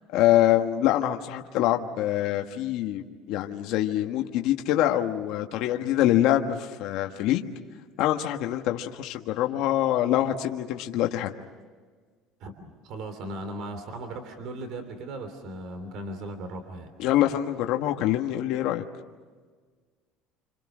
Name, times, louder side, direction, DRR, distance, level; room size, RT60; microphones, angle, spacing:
voice 1, 0.1-7.5 8.0-11.3 17.0-18.8, left 13 dB, 60° left, 3 dB, 1.4 m, -25 dB
voice 2, 12.4-16.9, right 1 dB, 50° right, 8 dB, 3.0 m, -37 dB
29.0 x 26.5 x 6.2 m, 1.5 s
cardioid pair, 175°, 0 cm